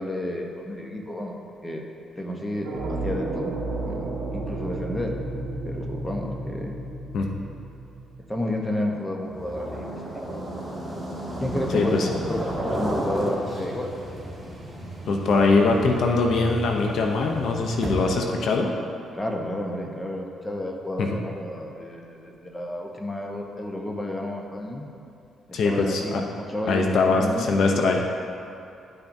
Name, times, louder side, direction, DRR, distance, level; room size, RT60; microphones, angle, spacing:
voice 1, 0.0-1.8 2.2-3.6 3.8-5.1 5.6-6.8 8.3-10.2 11.4-13.9 19.1-24.9 25.5-27.5, left 1 dB, 15° left, 1 dB, 0.9 m, -31 dB
sound 1, 2.6-8.5, right 2 dB, 70° right, 1.0 m, -32 dB
sound 2, 9.2-18.3, right 1 dB, 5° right, 1.7 m, -33 dB
voice 2, 11.7-12.1 15.1-18.7 21.0-21.1 25.5-26.2 26.7-28.0, left 3 dB, 65° left, 2 dB, 0.7 m, -22 dB
11.5 x 5.8 x 2.7 m, 2.7 s
cardioid pair, 90°, 0 cm